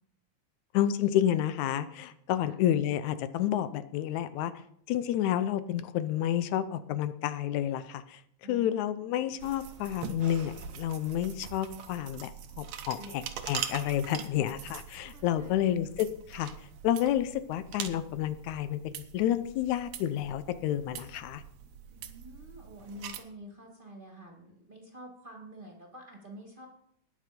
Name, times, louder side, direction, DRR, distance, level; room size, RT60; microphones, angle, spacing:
voice 1, 0.7-4.5 4.9-8.2 8.5-12.3 12.6-16.5 16.8-21.4, left 11 dB, 80° left, 13 dB, 2.0 m, -30 dB
voice 2, 8.4-9.0 13.0-13.2 14.1-14.2 15.1-15.8 21.9-26.7, equal, 20° right, 1 dB, 2.1 m, -48 dB
sound 1, 9.4-23.2, right 8 dB, 70° right, 2.1 m, -43 dB
19.5 x 6.8 x 5.3 m, 0.68 s
omnidirectional pair, 3.4 m